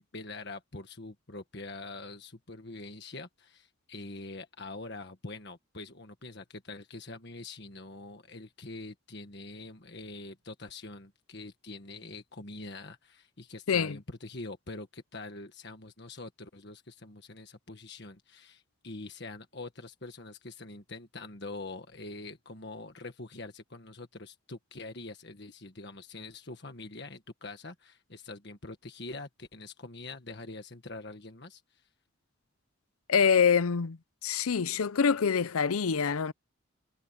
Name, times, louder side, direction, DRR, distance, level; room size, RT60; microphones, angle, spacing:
voice 1, 0.0-31.8, left 2 dB, 55° left, 1.6 m, -44 dB
voice 2, 13.7-14.0 33.1-34.0 34.2-36.3, left 6 dB, 90° left, 0.6 m, -25 dB
head